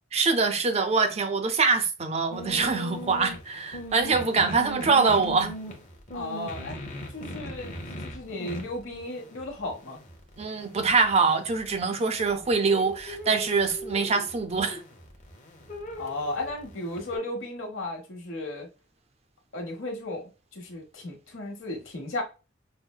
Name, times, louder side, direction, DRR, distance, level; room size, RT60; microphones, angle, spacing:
voice 1, 0.1-5.5 10.4-14.8, right 4 dB, 30° right, 0.5 m, -24 dB
sound 1, 2.3-17.2, equal, 40° left, 1.0 m, -40 dB
voice 2, 6.1-6.8 7.1-10.0 16.0-18.7 19.5-22.2, left 2 dB, 75° left, 1.2 m, -35 dB
5.4 x 2.1 x 2.2 m
head